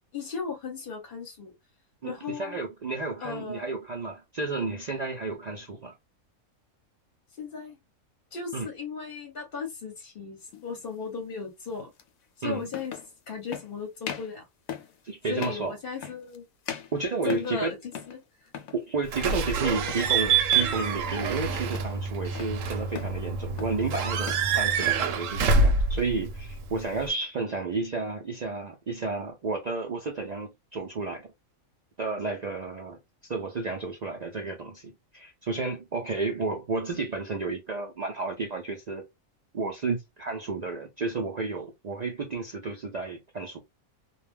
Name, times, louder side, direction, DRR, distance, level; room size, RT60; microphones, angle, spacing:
voice 1, 0.1-1.5 2.0-2.6 3.2-3.6 7.4-7.8 8.3-11.9 12.4-12.9 13.3-14.5 15.3-16.4 17.2-17.8 18.1-18.2 19.6-19.8, left 5 dB, 45° left, 0.8 m, -36 dB
voice 2, 2.0-5.9 8.5-8.7 12.4-12.7 15.0-15.7 16.0-16.1 16.9-17.7 18.7-31.2 32.0-33.0 33.3-39.0 39.5-43.6, right 3 dB, 90° right, 0.3 m, -32 dB
sound 1, 10.5-10.7 12.0-12.1 12.7-13.1 13.5-13.7 14.0-14.4 14.7-15.0 15.4-15.7 16.0-16.4 16.7-17.6 17.9-18.2 18.5-18.8 19.3-19.6 19.9-20.2 20.5-20.8 21.1-21.4 21.7-22.6 23.0-23.2 23.6-23.9 24.2-24.5 24.8-25.7, left 8 dB, 80° left, 1.0 m, -40 dB
Slam / Squeak / Alarm, 19.1-27.1, right 4 dB, 70° right, 0.9 m, -26 dB
2.3 x 2.2 x 3.3 m
omnidirectional pair, 1.4 m